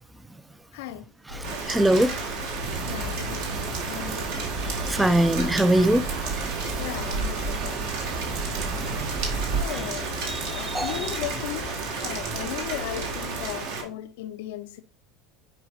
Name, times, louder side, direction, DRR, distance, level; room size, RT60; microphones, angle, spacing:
voice 1, 0.7-1.1 1.6-1.8 2.9-4.3 6.8-7.8 9.4-10.1 10.4-14.8, left 14 dB, 60° left, 0.6 m, -36 dB
voice 2, 1.3-2.3 4.9-6.1 9.7-9.9 10.3-11.1, right 1 dB, 5° right, 0.5 m, -23 dB
sound 1, 1.3-13.5, left 4 dB, 80° right, 4.0 m, -38 dB
Rain, 1.4-13.8, right 4 dB, 55° right, 1.9 m, -33 dB
sound 2, 2.6-9.6, right 7 dB, 40° right, 0.7 m, -33 dB
9.7 x 4.7 x 2.7 m
figure-of-eight pair, 75°, 0 cm